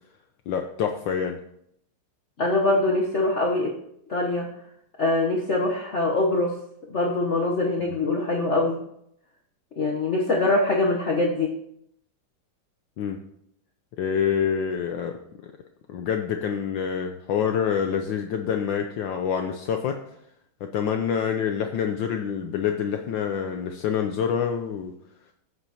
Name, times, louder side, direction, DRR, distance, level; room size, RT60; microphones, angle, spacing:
voice 1, 0.5-1.4 7.9-8.0 13.0-13.2 14.0-15.1 15.9-20.0 20.6-24.9, left 7 dB, 70° left, 4 dB, 1.3 m, -26 dB
voice 2, 2.4-3.7 4.1-4.5 5.0-6.5 6.9-8.8 9.8-11.5, left 2 dB, 45° left, -1 dB, 1.1 m, -23 dB
15.5 x 8.1 x 2.9 m, 0.74 s
omnidirectional pair, 2.3 m